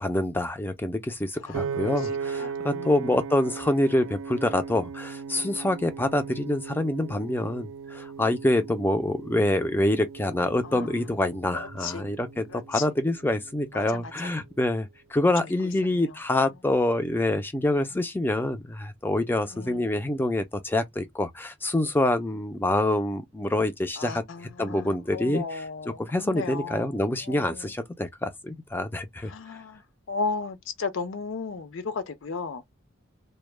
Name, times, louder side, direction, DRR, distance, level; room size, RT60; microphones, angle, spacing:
voice 1, 0.0-24.2 24.6-25.6 26.0-29.3, left 1 dB, 10° left, 0.3 m, -26 dB
voice 2, 1.4-2.9 10.6-10.9 11.5-12.1 12.5-12.8 13.7-14.3 15.4-15.5 19.5-19.8 24.0-26.9 27.2-27.7 29.3-29.8 30.1-32.6, left 4 dB, 70° left, 0.5 m, -35 dB
Piano, 1.5-13.8, right 6 dB, 70° right, 0.3 m, -37 dB
2.1 x 2.1 x 3.1 m
head